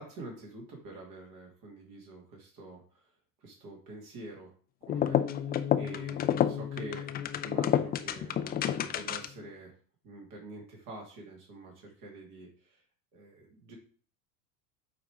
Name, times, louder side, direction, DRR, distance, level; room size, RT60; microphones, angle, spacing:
voice 1, 0.0-3.1 3.4-4.5 4.8-7.1 7.4-9.7 10.0-12.8 13.1-13.7, right 2 dB, 45° right, 0 dB, 2.5 m, -47 dB
sound 1, 4.8-9.5, left 10 dB, 20° left, 0.5 m, -29 dB
8.8 x 3.4 x 4.9 m, 0.43 s
hypercardioid pair, 85°, 43 cm